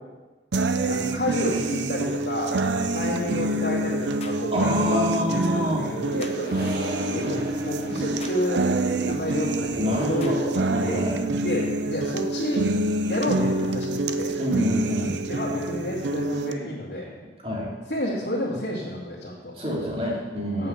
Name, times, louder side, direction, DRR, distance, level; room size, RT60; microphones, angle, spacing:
sound 1, 0.5-16.5, right 2 dB, 90° right, 0.6 m, -27 dB
voice 1, 0.8-6.7 7.1-8.7 9.0-11.0 11.4-12.6 13.1-14.3 15.3-17.1 17.9-19.5 20.6-20.7, left 1 dB, 75° left, -10 dB, 2.4 m, -30 dB
sound 2, 4.2-4.5 6.2-6.4 8.2-8.5 10.2-10.4, left 3 dB, 35° left, 1.0 m, -42 dB
voice 2, 4.5-5.9 9.7-11.2 14.4-15.1 17.4-17.7 19.5-20.7, equal, 35° right, -3 dB, 2.6 m, -27 dB
Accelerating revving vroom, 5.3-11.7, equal, 60° right, 2.1 m, -38 dB
8.4 x 7.2 x 7.1 m, 1.2 s
head